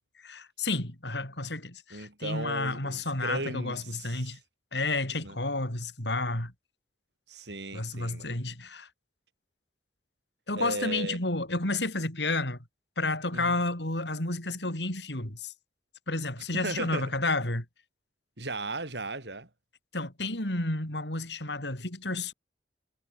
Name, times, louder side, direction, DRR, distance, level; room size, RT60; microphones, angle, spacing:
voice 1, 0.2-4.4 4.7-6.5 7.7-8.9 10.5-12.6 13.0-15.5 16.1-17.6 19.9-22.3, left 2 dB, 75° left, 5.9 m, -31 dB
voice 2, 1.9-4.4 5.2-5.4 7.3-8.4 10.6-11.2 13.3-13.6 16.5-17.1 18.4-19.5, right 2 dB, 75° right, 5.7 m, -36 dB
head